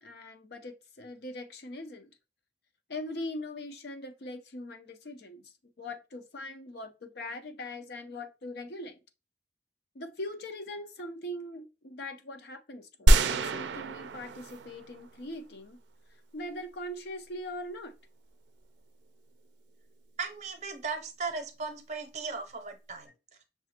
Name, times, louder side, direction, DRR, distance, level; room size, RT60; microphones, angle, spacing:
voice 1, 0.0-2.1 2.9-9.0 9.9-15.8 16.3-17.9, left 1 dB, 65° left, 0.6 m, -41 dB
sound 1, 13.1-15.3, right 1 dB, 85° right, 0.4 m, -25 dB
voice 2, 20.2-23.1, right 4 dB, 40° right, 0.7 m, -37 dB
6.1 x 2.5 x 2.8 m
head